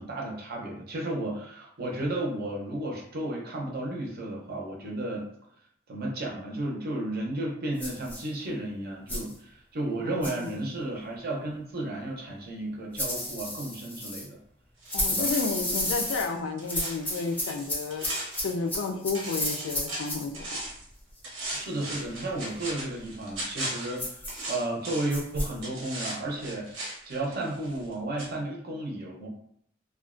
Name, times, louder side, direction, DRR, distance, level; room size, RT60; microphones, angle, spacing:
voice 1, 0.0-5.3 5.9-14.4 15.1-15.3 21.5-26.7 27.0-29.3, right 1 dB, 50° right, -2 dB, 0.6 m, -33 dB
sound 1, 7.8-8.2 9.1-9.3 10.2-10.5 13.0-14.3 14.9-16.3 16.7-20.3 24.0-24.4 25.1-25.5, left 1 dB, 10° left, 0.5 m, -32 dB
voice 2, 10.0-10.6 14.9-18.1 18.4-20.3, left 4 dB, 75° left, 6 dB, 0.3 m, -32 dB
sound 2, 14.8-18.9 19.1-20.9 21.2-25.2 25.6-27.9 28.2-28.3, right 1 dB, 85° right, 0.8 m, -38 dB
2.4 x 2.1 x 2.4 m, 0.68 s
head